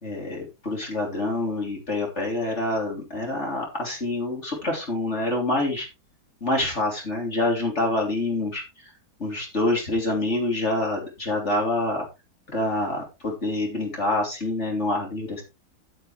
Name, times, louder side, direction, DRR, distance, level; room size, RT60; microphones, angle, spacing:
voice 1, 0.0-5.9 6.4-8.9 9.2-12.1 12.5-15.4, left 2 dB, 40° left, -1 dB, 3.7 m, -26 dB
11.0 x 9.5 x 3.3 m, 0.26 s
omnidirectional pair, 1.8 m